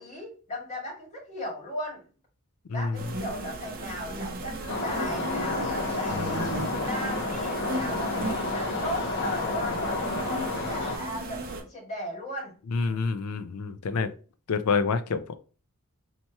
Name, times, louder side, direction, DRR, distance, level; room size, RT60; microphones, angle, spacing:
voice 1, 0.0-2.0 2.7-13.0 13.9-14.1, equal, 30° left, 2.0 m, -37 dB
sound 1, 2.9-11.6, right 2 dB, 45° right, 0.7 m, -36 dB
sound 2, 4.7-11.0, left 2 dB, 55° left, 0.9 m, -30 dB
voice 2, 6.2-6.6 12.7-14.1 14.5-15.4, left 4 dB, 75° left, 0.5 m, -28 dB
4.5 x 2.9 x 2.9 m
head